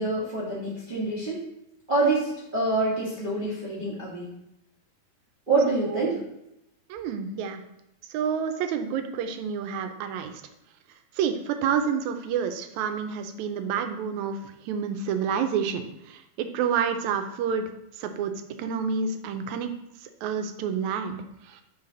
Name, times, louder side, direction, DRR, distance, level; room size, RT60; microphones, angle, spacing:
voice 1, 0.0-1.4 1.9-4.3 5.5-6.2, right 3 dB, 35° right, -8 dB, 0.7 m, -26 dB
voice 2, 5.8-6.2 6.9-7.6 8.1-10.3 11.2-14.4 14.7-15.8 16.1-17.7 18.0-18.3 18.6-19.7 20.2-21.2, right 7 dB, 80° right, 7 dB, 1.9 m, -28 dB
5.6 x 4.6 x 3.8 m, 0.85 s
omnidirectional pair, 3.5 m